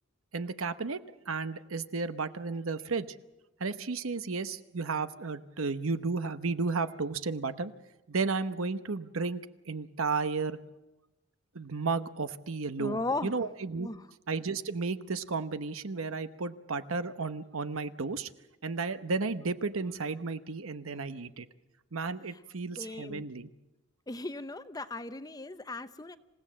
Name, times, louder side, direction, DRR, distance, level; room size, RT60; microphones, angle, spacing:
voice 1, 0.3-1.0 1.3-3.1 3.6-7.7 8.1-9.4 9.7-10.6 11.5-13.9 14.3-18.3 18.6-21.5 21.9-23.5, right 4 dB, 75° right, 11 dB, 1.0 m, -33 dB
voice 2, 12.8-13.3 13.8-14.1 22.8-23.2 24.1-26.2, left 2 dB, 20° left, 12 dB, 0.7 m, -36 dB
27.0 x 16.5 x 7.4 m, 1.0 s
head